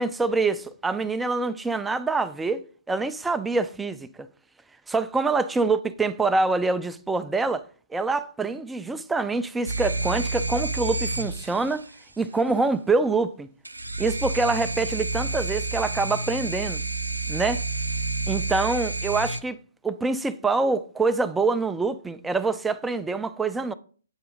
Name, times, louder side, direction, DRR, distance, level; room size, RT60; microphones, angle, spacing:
voice 1, 0.0-2.6 2.9-4.3 4.9-7.6 7.9-11.9 12.2-13.5 14.0-16.8 17.3-17.6 18.3-19.6 19.8-23.7, right 3 dB, 5° right, 0.3 m, -25 dB
sound 1, 9.7-12.0 13.6-19.4, right 2 dB, 85° right, 0.4 m, -29 dB
8.0 x 2.7 x 5.0 m
figure-of-eight pair, 130°, 0 cm